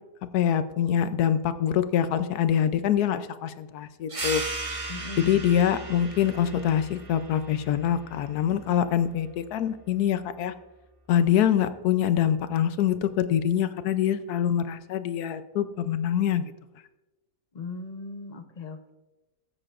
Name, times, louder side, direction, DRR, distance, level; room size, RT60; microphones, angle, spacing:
voice 1, 0.3-4.7 5.2-10.5 11.1-16.4, left 9 dB, 70° left, 12 dB, 1.1 m, -25 dB
sound 1, 4.1-9.3, right 2 dB, 25° right, 1.0 m, -37 dB
voice 2, 4.9-5.4 17.5-18.9, left 4 dB, 40° left, 7 dB, 0.6 m, -38 dB
17.5 x 8.8 x 2.5 m, 1.1 s
omnidirectional pair, 1.8 m